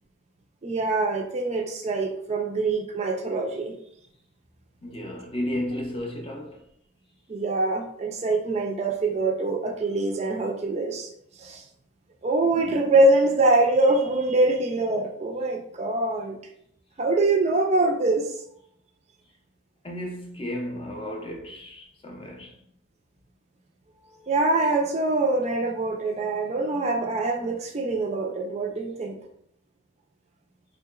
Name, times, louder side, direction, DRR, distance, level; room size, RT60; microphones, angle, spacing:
voice 1, 0.6-3.8 7.3-11.1 11.4-11.6 12.2-16.4 17.0-18.3 24.2-29.2, right 2 dB, 30° right, 0.4 m, -24 dB
voice 2, 4.8-6.6 12.5-12.8 19.8-22.6, left 1 dB, 25° left, 0.5 m, -33 dB
3.7 x 2.8 x 2.3 m
head